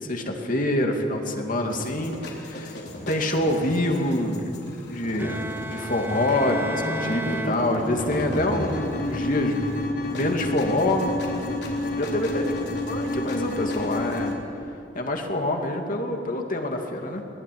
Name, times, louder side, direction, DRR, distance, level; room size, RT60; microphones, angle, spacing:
voice 1, 0.0-2.8 3.1-4.5 4.8-9.7 10.1-11.1 12.0-12.5 12.9-14.3 14.9-17.2, left 1 dB, 50° left, 2 dB, 2.6 m, -26 dB
sound 1, 1.7-14.3, left 1 dB, 65° left, 3.9 m, -31 dB
Bowed string instrument, 5.2-8.3, right 2 dB, 10° right, 0.6 m, -34 dB
21.5 x 19.0 x 9.6 m, 2.7 s
head